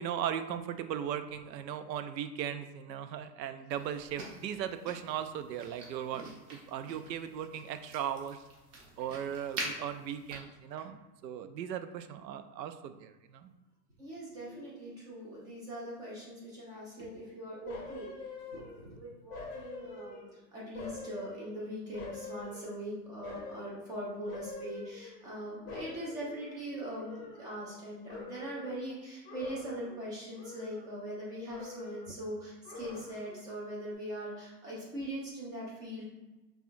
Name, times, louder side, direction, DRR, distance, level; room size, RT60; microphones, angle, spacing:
voice 1, 0.0-8.4 9.0-13.5, right 9 dB, 80° right, 10 dB, 0.6 m, -38 dB
sound 1, 3.7-10.4, right 2 dB, 45° right, 1.2 m, -45 dB
voice 2, 14.0-18.1 18.5-36.0, equal, 10° right, -6 dB, 0.4 m, -41 dB
sound 2, 17.7-18.9 19.3-20.4 20.7-22.9 23.2-23.8 24.3-25.4 25.7-27.8 28.1-28.8 29.2-30.0 30.3-31.2 31.5-32.2 32.6-33.4 33.8-33.9, left 3 dB, 20° left, 0.7 m, -46 dB
5.5 x 2.4 x 2.6 m, 1.1 s
hypercardioid pair, 130°, 50 cm